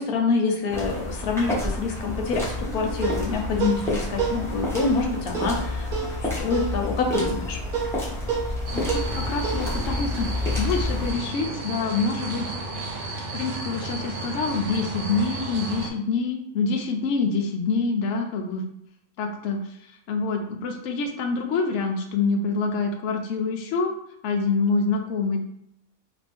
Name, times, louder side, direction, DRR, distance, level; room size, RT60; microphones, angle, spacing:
voice 1, 0.0-5.9 6.4-7.6, left 4 dB, 85° left, 2 dB, 1.1 m, -26 dB
sound 1, 0.7-11.1, left 2 dB, ahead, 0.7 m, -29 dB
sound 2, 2.6-11.4, right 7 dB, 85° right, 1.4 m, -33 dB
voice 2, 8.7-12.5 13.3-18.6 19.2-19.6 20.1-23.9 24.2-25.4, left 4 dB, 65° left, 3 dB, 0.8 m, -26 dB
sound 3, 8.7-15.9, right 2 dB, 65° right, 0.5 m, -33 dB
2.9 x 2.5 x 3.4 m, 0.78 s
omnidirectional pair, 1.5 m